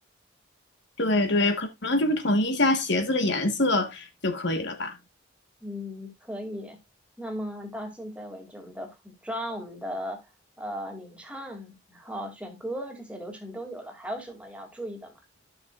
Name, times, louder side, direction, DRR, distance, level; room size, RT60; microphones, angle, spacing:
voice 1, 1.0-5.0, left 1 dB, 65° left, 1.3 m, -25 dB
voice 2, 5.6-6.8 7.2-10.3 10.6-15.1, equal, 5° right, 2.4 m, -37 dB
14.0 x 6.2 x 2.4 m
head